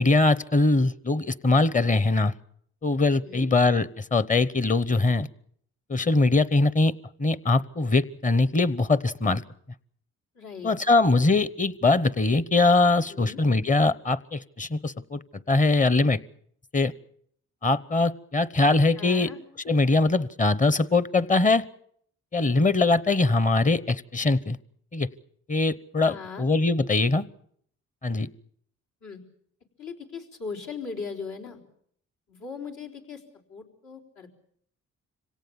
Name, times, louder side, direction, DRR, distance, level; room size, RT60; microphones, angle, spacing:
voice 1, 0.0-2.3 2.8-5.3 5.9-6.9 7.2-9.4 10.6-15.2 15.5-16.2 16.7-16.9 17.6-19.3 19.6-21.6 22.3-24.6 24.9-25.1 25.5-27.2 28.0-28.3, left 3 dB, 25° left, 18 dB, 0.9 m, -22 dB
voice 2, 10.3-10.7 13.1-13.4 19.0-19.4 26.0-26.5 29.0-29.2 29.8-31.6 32.3-33.2 33.5-34.3, left 5 dB, 75° left, -1 dB, 4.1 m, -38 dB
25.5 x 17.5 x 7.1 m, 0.65 s
cardioid pair, 75°, 29 cm